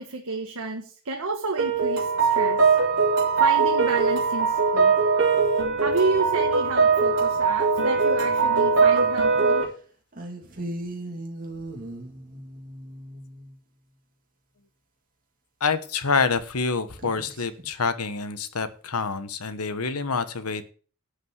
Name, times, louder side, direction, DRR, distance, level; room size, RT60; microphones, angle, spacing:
voice 1, 0.0-2.8 3.4-5.0 5.8-9.7, right 3 dB, 80° right, 2 dB, 1.5 m, -30 dB
sound 1, 1.6-9.6, right 4 dB, 60° right, 3.2 m, -21 dB
sound 2, 8.3-9.6 10.1-13.6 17.0-17.7, right 1 dB, 40° right, 2.6 m, -38 dB
voice 2, 15.6-20.7, left 4 dB, 90° left, 11 dB, 1.2 m, -27 dB
11.5 x 5.1 x 8.0 m, 0.40 s
head